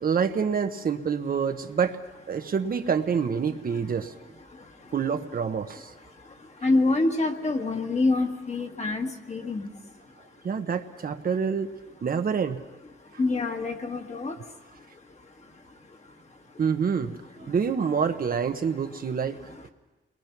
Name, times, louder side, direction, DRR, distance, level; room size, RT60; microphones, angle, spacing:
voice 1, 0.0-2.0 2.3-4.2 4.9-5.9 10.4-11.7 12.0-12.6 16.6-19.4, right 6 dB, 45° right, 7 dB, 1.0 m, -27 dB
voice 2, 6.6-9.7 13.2-14.4, left 2 dB, 35° left, 3 dB, 1.8 m, -26 dB
29.0 x 22.0 x 5.9 m, 1.1 s
wide cardioid pair, 165°, 20 cm